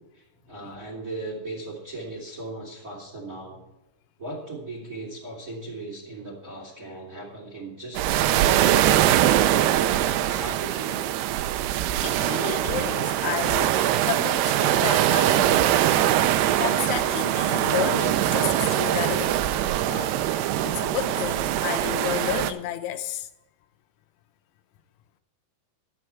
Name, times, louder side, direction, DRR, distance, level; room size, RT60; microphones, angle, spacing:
voice 1, 0.0-3.7 4.2-11.1, right 2 dB, 30° right, 1.7 m, -38 dB
sound 1, 7.9-22.5, right 12 dB, 85° right, 2.3 m, -22 dB
voice 2, 12.0-19.4 19.9-20.2 20.6-23.3, left 11 dB, 80° left, 3.0 m, -32 dB
12.0 x 9.3 x 4.6 m
omnidirectional pair, 5.4 m